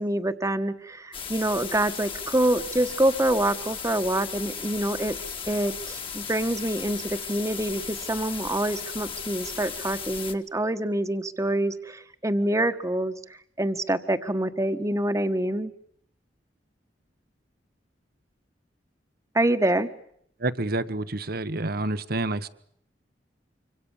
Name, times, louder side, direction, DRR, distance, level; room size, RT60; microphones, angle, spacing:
voice 1, 0.0-5.2 5.5-13.1 13.6-15.7 19.3-19.9, right 1 dB, 20° right, 10 dB, 1.4 m, -26 dB
sound 1, 1.1-10.3, left 6 dB, 30° left, 1.8 m, -36 dB
voice 2, 20.4-22.5, right 2 dB, 60° right, 13 dB, 1.2 m, -28 dB
25.5 x 25.5 x 7.3 m, 0.68 s
head